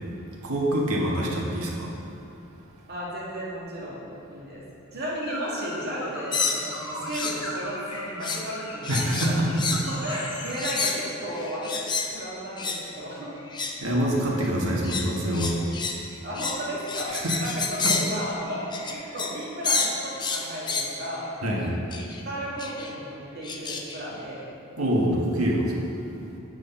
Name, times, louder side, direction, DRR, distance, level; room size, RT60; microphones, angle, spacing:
voice 1, 0.4-1.9 8.9-9.5 13.8-15.6 17.1-17.4 21.4-21.8 24.8-25.9, right 1 dB, 90° right, -2 dB, 1.6 m, -25 dB
voice 2, 2.9-4.6 4.9-9.4 9.9-11.8 12.1-13.4 13.9-14.0 16.2-21.3 22.2-24.5, equal, 50° right, -6 dB, 2.4 m, -34 dB
sound 1, 5.2-10.6, left 1 dB, 75° left, 1.9 m, -38 dB
sound 2, 6.3-7.4 7.7-8.5 8.8-12.1 12.6-12.8 13.4-13.9 14.4-19.4 19.6-21.0 21.9-22.2 22.6-22.9 23.4-24.0, left 4 dB, 20° left, 0.6 m, -30 dB
9.3 x 6.3 x 5.7 m, 2.7 s
head